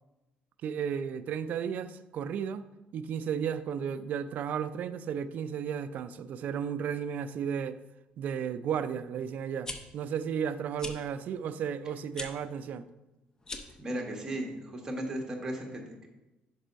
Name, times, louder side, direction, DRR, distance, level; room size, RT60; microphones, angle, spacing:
voice 1, 0.6-2.7 2.9-7.8 8.2-12.9, right 8 dB, 55° right, 0.4 m, -34 dB
sound 1, 9.6-9.8 10.8-11.0 12.1-12.3 13.4-13.8, left 2 dB, 20° left, 0.6 m, -39 dB
voice 2, 13.8-16.1, right 1 dB, 20° right, 1.3 m, -36 dB
5.4 x 5.3 x 5.1 m
cardioid pair, 135°, 3 cm